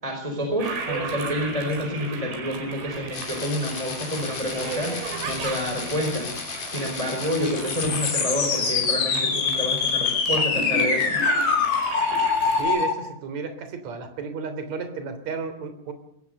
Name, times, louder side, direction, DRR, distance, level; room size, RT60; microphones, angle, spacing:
voice 1, 0.0-6.3 6.6-11.2, equal, 10° right, 3 dB, 4.3 m, -28 dB
Toilet flush, 0.6-12.6, right 3 dB, 85° right, 7.0 m, -35 dB
sound 1, 3.1-12.9, left 5 dB, 45° left, 4.3 m, -26 dB
voice 2, 12.5-15.9, right 5 dB, 45° right, 9 dB, 4.3 m, -32 dB
23.5 x 19.0 x 6.7 m, 0.74 s
omnidirectional pair, 4.7 m